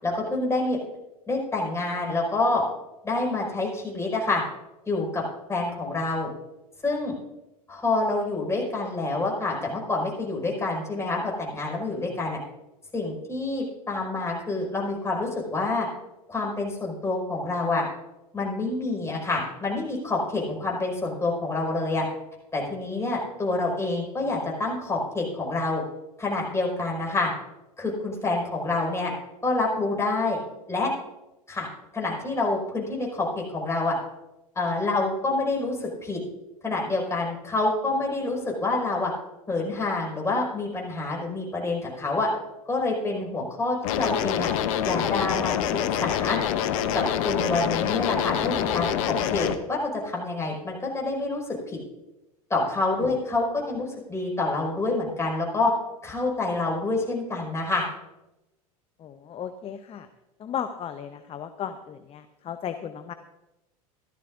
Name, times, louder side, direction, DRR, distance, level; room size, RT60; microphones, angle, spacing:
voice 1, 0.0-0.8 1.3-2.6 3.0-4.4 4.9-5.2 5.5-6.3 6.8-7.1 7.7-12.4 12.9-15.9 16.3-17.8 18.3-22.1 22.5-25.8 26.2-27.3 27.8-29.1 29.4-30.4 30.7-30.9 31.5-31.7 31.9-33.9 34.6-36.2 36.6-39.1 39.5-42.3 42.7-44.5 44.8-46.4 46.9-51.8 52.5-55.7 56.0-57.9, left 2 dB, 15° left, -1 dB, 5.2 m, -27 dB
sound 1, 43.8-49.6, left 9 dB, 60° left, 1.0 m, -26 dB
voice 2, 59.0-60.1 60.4-63.1, left 8 dB, 30° left, 9 dB, 0.7 m, -35 dB
16.5 x 12.5 x 2.6 m, 0.96 s
hypercardioid pair, 90°, 19 cm